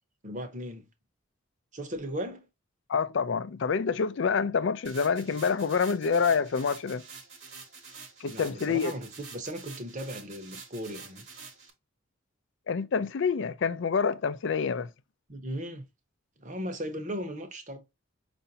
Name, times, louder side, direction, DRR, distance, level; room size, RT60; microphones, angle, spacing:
voice 1, 0.2-0.9 1.7-2.5 8.3-11.2 15.3-15.8 16.4-17.8, equal, 35° right, 0.9 m, -37 dB
voice 2, 2.9-7.0 8.2-8.9 12.7-14.9, left 5 dB, 60° left, 0.4 m, -27 dB
sound 1, 4.8-11.7, right 5 dB, 55° right, 1.3 m, -47 dB
5.5 x 2.6 x 2.6 m
head